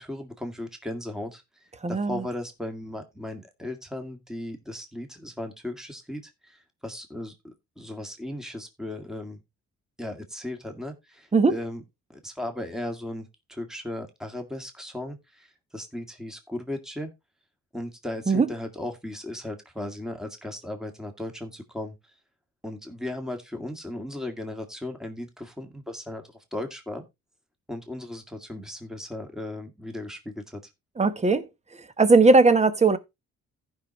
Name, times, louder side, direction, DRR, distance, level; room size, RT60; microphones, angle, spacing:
voice 1, 0.0-1.4 1.9-9.4 10.0-11.8 12.1-17.1 17.7-22.0 22.6-26.2 26.5-27.0 27.7-30.6, left 1 dB, ahead, 2.0 m, -36 dB
voice 2, 1.8-2.2 11.3-11.6 18.3-18.5 31.0-31.5 31.8-33.0, right 3 dB, 20° right, 1.2 m, -19 dB
15.0 x 5.7 x 3.1 m
cardioid pair, 90°, 30 cm